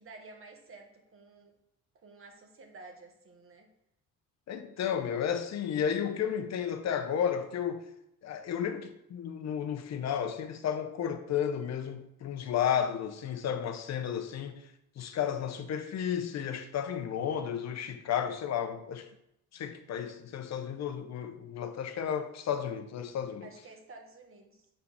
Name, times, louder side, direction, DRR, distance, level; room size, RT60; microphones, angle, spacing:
voice 1, 0.0-1.5 1.9-3.7 23.4-24.7, right 3 dB, 45° right, 1.5 m, -51 dB
voice 2, 4.5-7.9 8.2-14.6 15.0-19.1 19.5-23.5, left 8 dB, 60° left, 0.8 m, -33 dB
7.7 x 4.9 x 3.4 m
cardioid pair, 90°, 30 cm